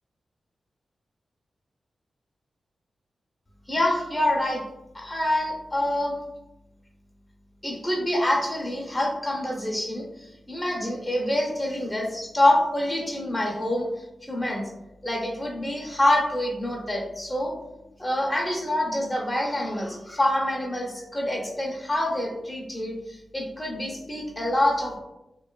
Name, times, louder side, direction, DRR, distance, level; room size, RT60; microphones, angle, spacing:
voice 1, 3.7-4.6 4.9-6.1 7.6-13.9 14.3-14.6 15.0-17.5 18.0-25.0, left 1 dB, 15° left, -2 dB, 0.6 m, -26 dB
2.7 x 2.2 x 2.3 m, 0.92 s
wide cardioid pair, 115°, 0 cm